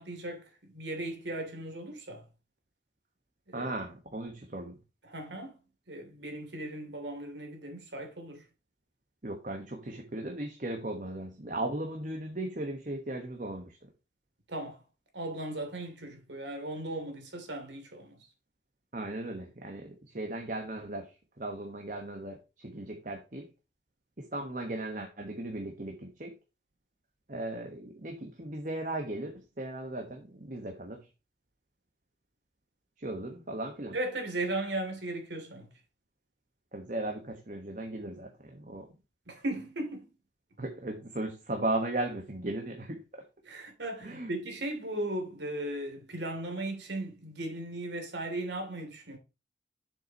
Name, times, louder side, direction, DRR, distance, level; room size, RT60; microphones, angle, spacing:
voice 1, 0.0-2.2 3.5-3.7 5.0-5.6 5.9-8.4 14.5-14.8 15.1-18.3 33.9-35.7 39.3-40.1 43.4-49.2, right 1 dB, 85° right, 2.8 m, -37 dB
voice 2, 3.5-4.8 9.2-13.8 18.9-21.1 21.4-23.5 24.2-26.3 27.3-31.0 33.0-34.0 36.7-38.9 40.6-43.2 44.0-44.3, right 1 dB, 45° right, 1.3 m, -37 dB
7.7 x 6.8 x 2.9 m
head